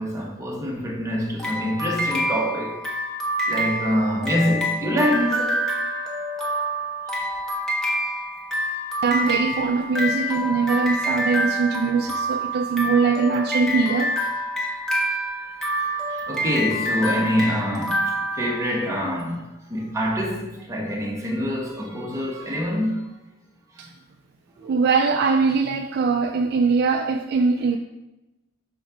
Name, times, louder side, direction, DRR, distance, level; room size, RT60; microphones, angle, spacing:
voice 1, 0.0-2.8 3.5-5.7 15.6-23.1 23.7-23.9 24.6-24.7, equal, 15° right, 1.2 m, -26 dB
sound 1, 1.4-19.1, equal, 5° left, 1.1 m, -27 dB
voice 2, 9.0-14.2 23.8-23.9 24.6-27.8, right 4 dB, 50° right, 0.3 m, -22 dB
5.7 x 4.2 x 4.9 m
head